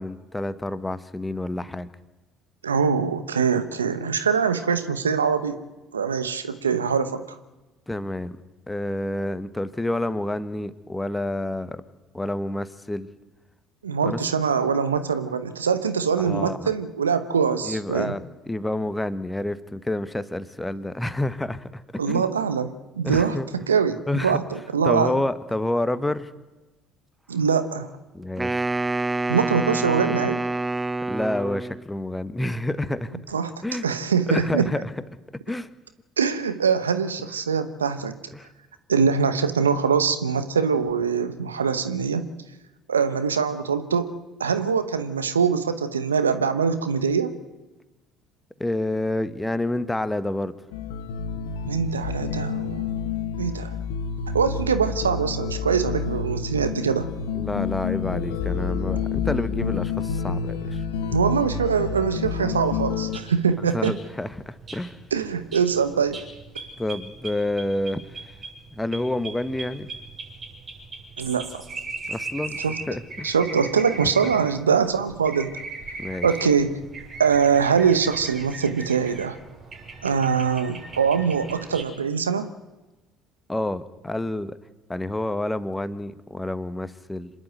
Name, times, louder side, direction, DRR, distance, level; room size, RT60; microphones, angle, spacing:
voice 1, 0.0-1.9 7.9-8.3 8.7-11.8 12.1-13.1 14.0-14.2 16.2-16.7 17.6-22.3 23.0-23.5 24.1-24.4 24.8-26.3 28.1-28.6 31.1-33.1 33.6-33.9 34.3-34.9 35.5-35.7 38.3-38.5 48.6-50.5 57.4-60.8 63.7-65.0 66.8-68.0 68.7-69.9 72.1-72.6 72.9-73.3 76.0-76.3 83.5-84.6 84.9-87.3, left 1 dB, 10° left, 14 dB, 1.2 m, -28 dB
voice 2, 2.6-5.6 5.9-7.4 13.8-18.2 22.0-23.4 23.7-25.2 27.3-27.9 29.3-30.4 33.3-33.5 33.8-34.7 36.2-38.1 38.9-42.2 42.9-44.1 44.4-47.3 51.7-52.9 53.4-53.8 54.3-57.1 61.1-64.0 65.1-66.2 71.2-71.5 72.6-72.8 73.2-75.5 76.2-76.8 77.2-79.4 80.0-82.5, right 6 dB, 90° right, 11 dB, 0.9 m, -23 dB
Wind instrument woodwind instrument, 28.4-31.9, right 2 dB, 15° right, 0.7 m, -27 dB
sound 1, 50.7-63.2, left 6 dB, 75° left, 1.2 m, -29 dB
sound 2, 63.1-81.8, right 3 dB, 40° right, 7.1 m, -39 dB
26.0 x 11.0 x 9.3 m, 1.1 s
hypercardioid pair, 60°, 0 cm